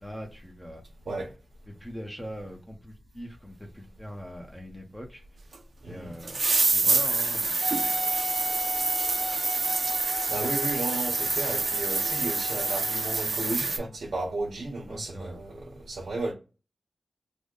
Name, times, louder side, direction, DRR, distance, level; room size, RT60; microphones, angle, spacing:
voice 1, 0.0-0.8 1.7-5.2 5.8-8.0 14.9-15.4, equal, 10° left, 0.7 m, -42 dB
sound 1, 5.5-5.6 6.2-13.8, right 3 dB, 60° right, 0.6 m, -27 dB
voice 2, 5.8-6.1 6.6-6.7 9.9-10.0 10.3-16.3, right 2 dB, 85° right, 1.0 m, -34 dB
Wind instrument woodwind instrument, 7.6-13.2, left 1 dB, 45° left, 0.7 m, -37 dB
3.3 x 2.1 x 3.7 m
wide cardioid pair, 80°, 0 cm